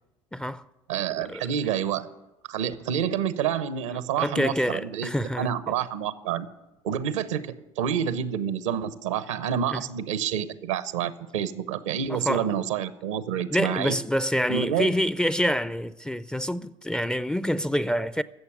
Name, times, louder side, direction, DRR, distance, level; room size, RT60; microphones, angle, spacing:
voice 1, 0.3-0.6 1.2-1.5 4.2-5.5 9.7-9.8 12.1-12.5 13.5-18.2, equal, 5° left, 0.5 m, -27 dB
voice 2, 0.9-2.1 2.5-6.5 6.8-13.9 14.5-14.9, right 8 dB, 80° right, 0.9 m, -28 dB
15.5 x 7.0 x 9.5 m
hypercardioid pair, 70°, 16 cm